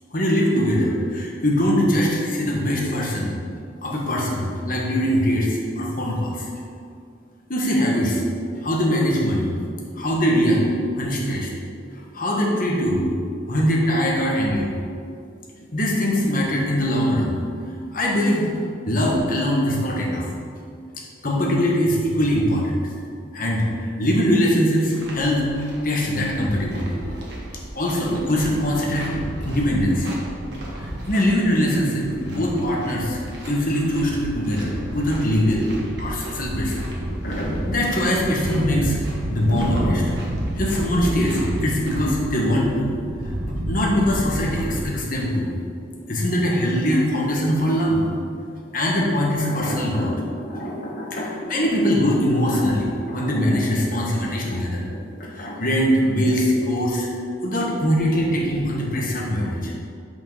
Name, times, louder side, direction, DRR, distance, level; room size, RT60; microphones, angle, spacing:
voice 1, 0.1-3.3 3.8-6.5 7.5-8.2 8.6-9.5 10.0-10.6 10.9-11.5 12.1-13.0 13.5-14.7 15.7-17.4 17.9-18.5 18.8-20.3 21.2-22.8 23.3-27.3 27.7-29.1 29.4-30.1 30.8-35.7 36.0-36.8 37.2-39.0 39.3-40.0 40.6-42.9 43.7-45.5 46.1-48.0 48.7-57.1 57.4-59.7, equal, 50° left, -2 dB, 1.4 m, -22 dB
sound 1, 24.9-44.8, equal, 65° right, 1.5 m, -30 dB
5.9 x 5.4 x 5.5 m, 2.3 s
head